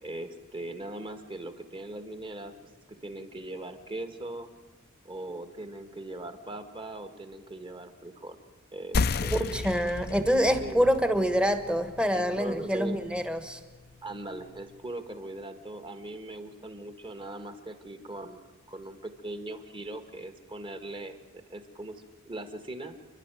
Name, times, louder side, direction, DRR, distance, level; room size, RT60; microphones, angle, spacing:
voice 1, 0.0-2.5 2.9-4.5 5.0-8.4 8.7-9.7 10.6-10.9 12.1-13.0 14.0-21.2 21.5-23.0, right 2 dB, 25° right, 8 dB, 1.7 m, -40 dB
sound 1, 8.9-14.1, left 4 dB, 50° left, 0.6 m, -34 dB
voice 2, 9.3-13.6, equal, 5° right, 9 dB, 1.3 m, -26 dB
29.0 x 11.5 x 9.2 m, 1.4 s
head